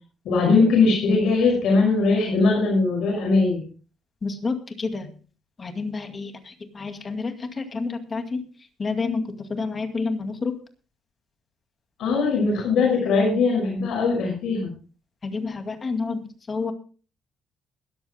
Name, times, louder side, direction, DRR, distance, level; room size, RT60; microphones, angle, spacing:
voice 1, 0.2-3.6 12.0-14.7, left 4 dB, 75° left, -1 dB, 6.1 m, -20 dB
voice 2, 4.2-5.1 5.6-8.4 8.8-10.5 15.2-16.7, left 4 dB, 30° left, 6 dB, 2.2 m, -29 dB
21.5 x 13.5 x 2.2 m, 0.36 s
cardioid pair, 115°, 0 cm